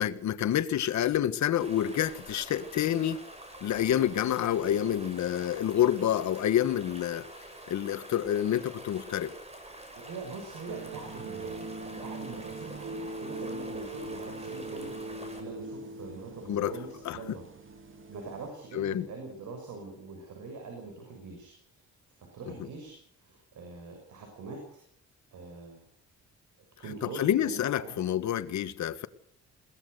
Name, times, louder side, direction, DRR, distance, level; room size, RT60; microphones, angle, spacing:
voice 1, 0.0-3.2 3.6-7.3 7.7-9.3 16.5-16.7 17.0-17.2 18.7-19.0 27.0-29.1, left 10 dB, 65° left, 13 dB, 1.4 m, -28 dB
sound 1, 1.6-15.4, right 1 dB, 20° right, 6.1 m, -47 dB
voice 2, 10.0-17.5 17.8-21.8 22.2-24.8 25.3-25.8 26.8-27.9, right 3 dB, 75° right, 3 dB, 6.7 m, -43 dB
sound 2, 10.7-18.5, right 2 dB, 40° right, 2.3 m, -41 dB
21.5 x 18.0 x 6.7 m, 0.62 s
cardioid pair, 90°, 30 cm